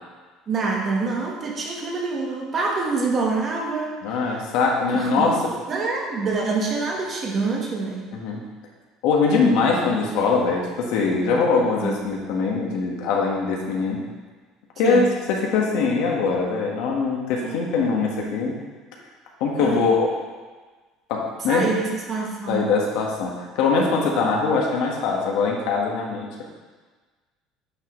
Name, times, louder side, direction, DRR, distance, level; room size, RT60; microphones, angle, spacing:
voice 1, 0.5-3.9 4.9-5.4 5.7-8.1 11.8-12.0 14.8-15.1 17.4-17.6 19.6-19.8 21.5-22.7, right 4 dB, 30° right, -1 dB, 1.3 m, -26 dB
voice 2, 4.0-5.4 8.1-8.4 9.0-14.0 14.8-18.5 19.4-20.1 21.1-21.7 22.5-26.5, left 4 dB, 70° left, -1 dB, 1.5 m, -22 dB
9.9 x 5.6 x 3.2 m, 1.4 s
cardioid pair, 150°, 0 cm